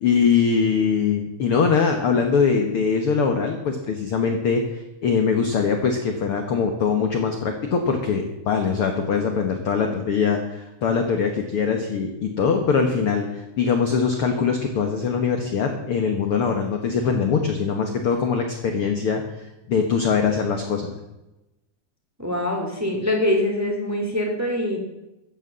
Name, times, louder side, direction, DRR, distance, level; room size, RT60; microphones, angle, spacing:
voice 1, 0.0-20.9, left 6 dB, 55° left, 4 dB, 1.6 m, -22 dB
voice 2, 22.2-24.8, left 1 dB, 5° right, 1 dB, 2.5 m, -24 dB
15.0 x 9.6 x 7.5 m, 0.96 s
omnidirectional pair, 4.3 m